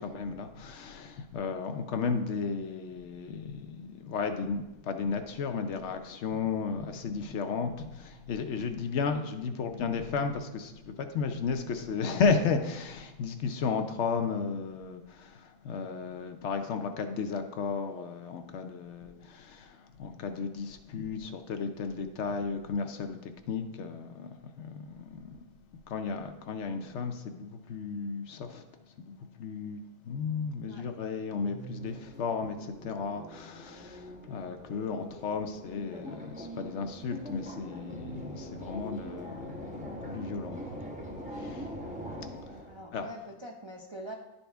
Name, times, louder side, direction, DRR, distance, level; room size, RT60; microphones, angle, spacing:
voice 1, 0.0-24.3 24.5-25.4 25.9-28.6 29.0-29.1 29.4-40.9 41.3-41.7 42.5-42.7 42.9-43.1, left 5 dB, 65° left, 6 dB, 0.8 m, -34 dB
sound 1, 31.3-42.8, equal, 5° right, 0.9 m, -43 dB
voice 2, 42.7-44.2, equal, 40° right, -1 dB, 0.4 m, -44 dB
11.0 x 4.2 x 3.4 m, 1.0 s
omnidirectional pair, 1.4 m